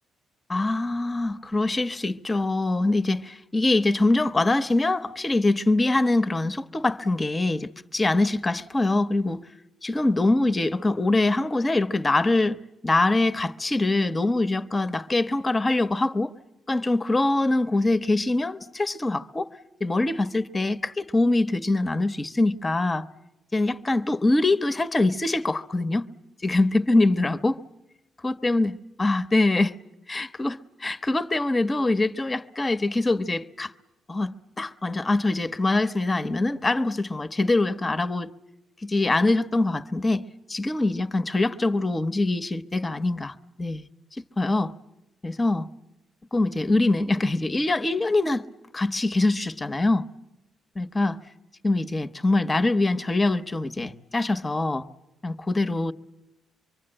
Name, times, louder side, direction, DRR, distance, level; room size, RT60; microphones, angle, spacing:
voice 1, 0.5-9.4 9.8-12.6 12.8-16.3 16.7-19.5 19.8-23.1 23.5-26.1 26.4-27.6 28.2-29.7 30.1-33.7 34.1-38.3 38.8-44.7 45.2-45.7 46.3-48.5 48.7-50.1 50.8-51.2 51.6-54.9 55.2-55.9, left 2 dB, 20° left, 1.0 m, -24 dB
25.0 x 24.0 x 8.9 m
cardioid pair, 90°, 0 cm